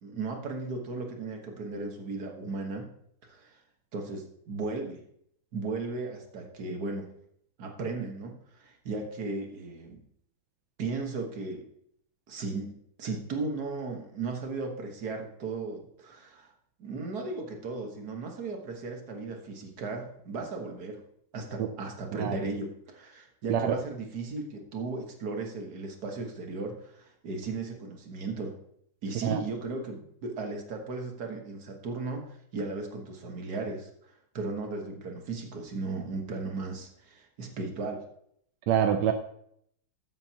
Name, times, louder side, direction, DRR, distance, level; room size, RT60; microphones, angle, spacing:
voice 1, 0.0-2.9 3.3-3.6 3.9-5.0 5.5-7.1 7.6-10.0 10.8-11.7 12.3-12.7 13.0-16.5 16.8-21.0 21.3-28.6 29.0-38.0, right 3 dB, 50° right, 2 dB, 1.8 m, -36 dB
voice 2, 38.7-39.1, right 9 dB, 70° right, 6 dB, 1.1 m, -26 dB
13.5 x 7.8 x 2.9 m, 0.70 s
omnidirectional pair, 2.4 m